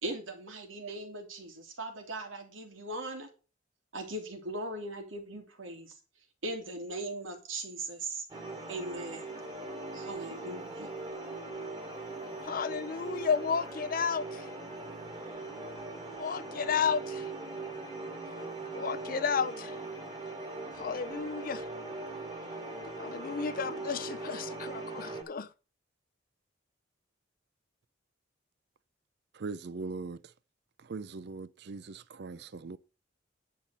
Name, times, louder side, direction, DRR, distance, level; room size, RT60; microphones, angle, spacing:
voice 1, 0.0-3.3 3.9-5.9 6.4-8.2 8.7-9.2 9.9-10.9, right 2 dB, 85° right, 3.0 m, -39 dB
sound 1, 8.3-25.2, right 2 dB, 25° right, 2.4 m, -40 dB
voice 2, 12.5-14.5 16.1-17.3 18.7-19.7 20.8-21.6 23.0-25.5, left 6 dB, 45° left, 0.5 m, -32 dB
voice 3, 29.3-30.2 30.8-32.8, right 4 dB, 55° right, 0.5 m, -40 dB
10.0 x 5.9 x 6.7 m
head